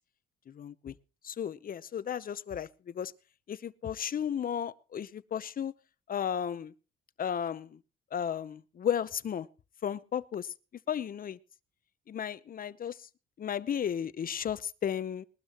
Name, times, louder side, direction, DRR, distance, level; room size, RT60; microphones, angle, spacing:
voice 1, 0.5-0.9 1.2-3.1 3.5-5.7 6.1-6.7 7.2-7.8 8.1-9.5 9.8-10.5 10.9-11.4 12.1-13.1 13.4-15.2, left 8 dB, 45° left, 16 dB, 0.7 m, -34 dB
20.5 x 12.5 x 3.0 m, 0.33 s
cardioid pair, 90°, 20 cm